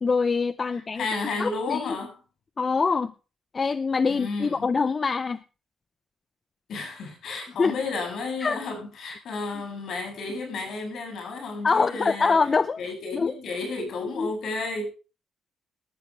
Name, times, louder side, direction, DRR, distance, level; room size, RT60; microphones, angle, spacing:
voice 1, 0.0-1.1 1.4-1.8 2.6-3.1 3.5-5.4 7.6-7.8 8.4-8.6 9.0-9.1 11.6-12.8 13.1-13.3 14.2-14.3, left 4 dB, 35° left, 0.7 m, -24 dB
voice 2, 0.7-2.2 4.1-4.7 6.7-12.3 12.8-14.9, left 3 dB, 60° left, 7.7 m, -32 dB
19.0 x 13.0 x 3.4 m
cardioid pair, 100°, 0 cm